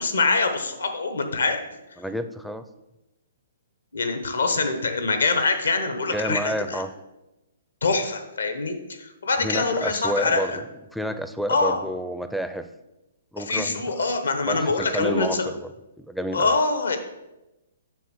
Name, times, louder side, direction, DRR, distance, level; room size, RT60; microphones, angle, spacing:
voice 1, 0.0-1.6 3.9-6.8 7.8-10.6 11.5-11.8 13.4-15.5 16.3-17.0, left 3 dB, 80° left, 7 dB, 1.1 m, -24 dB
voice 2, 2.0-2.6 6.1-6.9 9.4-10.6 10.9-12.7 13.3-14.1 14.4-15.7 16.0-16.5, equal, ahead, 9 dB, 0.4 m, -30 dB
6.9 x 3.6 x 6.4 m, 0.97 s
hypercardioid pair, 130°, 0 cm